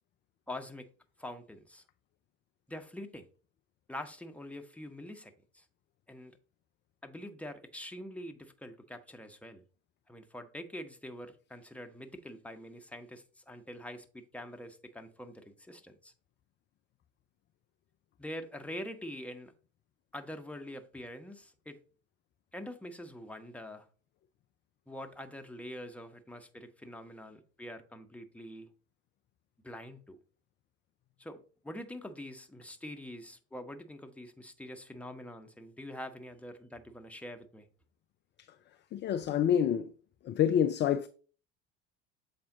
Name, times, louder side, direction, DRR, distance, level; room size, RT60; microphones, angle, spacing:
voice 1, 0.5-0.9 1.2-1.8 2.7-3.3 3.9-5.6 6.1-6.4 7.0-9.6 10.1-16.1 18.2-19.5 20.1-21.8 22.5-23.9 24.9-28.7 29.6-30.2 31.2-37.7, left 1 dB, 5° left, 1.0 m, -45 dB
voice 2, 38.9-39.9 40.2-41.1, left 9 dB, 30° left, 0.4 m, -27 dB
7.2 x 4.3 x 3.9 m
figure-of-eight pair, 65°, 41 cm